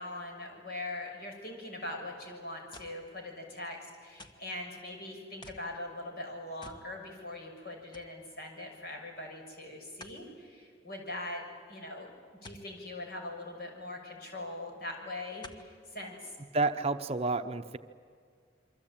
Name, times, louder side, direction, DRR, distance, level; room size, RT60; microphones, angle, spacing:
voice 1, 0.0-11.4 11.7-12.1 12.4-16.3, left 2 dB, 60° left, 2 dB, 6.4 m, -42 dB
sound 1, 2.7-3.1 4.2-4.5 5.4-5.7 6.6-6.9 7.3-7.4 7.9-8.2 10.0-10.2 12.4-12.7 14.1-14.2 15.4-15.7 16.4-16.5, left 1 dB, 25° left, 1.5 m, -50 dB
voice 2, 16.5-17.8, right 3 dB, 35° right, 8 dB, 0.8 m, -30 dB
27.0 x 24.0 x 8.8 m, 2.1 s
head